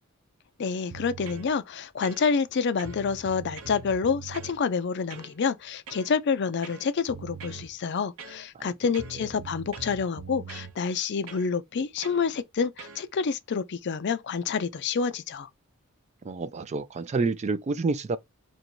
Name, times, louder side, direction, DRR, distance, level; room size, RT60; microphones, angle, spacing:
voice 1, 0.6-15.5, left 5 dB, 55° left, 0.4 m, -28 dB
sound 1, 0.9-1.5 2.0-2.5 2.8-4.6 5.1-5.3 5.9-6.1 6.6-7.7 8.2-8.7 8.9-10.7 11.3-11.5 12.0-12.3 12.8-13.0, right 5 dB, 85° right, 0.8 m, -42 dB
voice 2, 16.2-18.2, right 3 dB, 30° right, 0.3 m, -28 dB
2.9 x 2.7 x 4.4 m
head